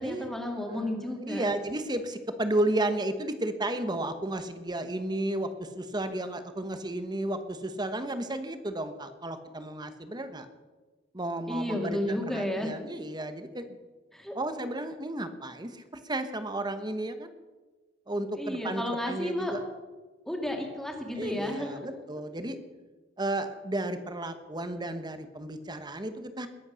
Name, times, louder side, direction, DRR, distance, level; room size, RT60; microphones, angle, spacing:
voice 1, 0.0-1.5 11.5-12.7 14.1-14.3 18.3-19.5 20.3-21.8, left 1 dB, ahead, 1 dB, 2.5 m, -32 dB
voice 2, 1.2-10.5 11.1-13.8 14.3-17.3 18.1-19.6 21.2-22.6 23.2-26.5, right 1 dB, 25° right, 9 dB, 1.2 m, -33 dB
21.0 x 8.5 x 6.4 m, 1.3 s
head